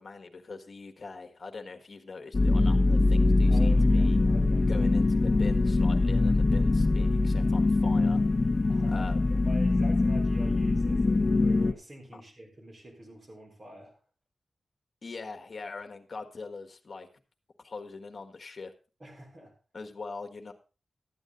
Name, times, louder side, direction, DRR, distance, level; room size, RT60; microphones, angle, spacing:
voice 1, 0.0-4.2 4.7-8.2 8.9-9.4 12.1-12.2 15.0-17.1 17.6-18.7 19.7-20.5, left 4 dB, 55° left, 6 dB, 1.4 m, -42 dB
sound 1, 2.3-11.7, left 2 dB, 40° left, 0.8 m, -23 dB
voice 2, 3.5-4.9 8.7-14.0 19.0-19.5, equal, 35° right, 1 dB, 4.1 m, -46 dB
12.5 x 9.0 x 3.9 m, 0.34 s
wide cardioid pair, 120°, 0 cm